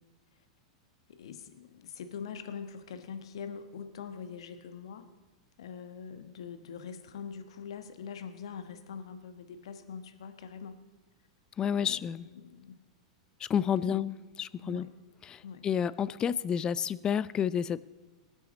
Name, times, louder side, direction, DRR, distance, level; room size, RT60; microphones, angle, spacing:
voice 1, 1.1-5.1 5.6-10.8 11.8-12.8 13.9-14.0 14.6-14.9 15.4-15.6, left 6 dB, 70° left, 9 dB, 1.2 m, -43 dB
voice 2, 11.6-12.3 13.4-14.9 15.3-17.8, left 8 dB, 25° left, 19 dB, 0.4 m, -30 dB
21.5 x 9.0 x 4.1 m, 1.2 s
hypercardioid pair, 95°, 3 cm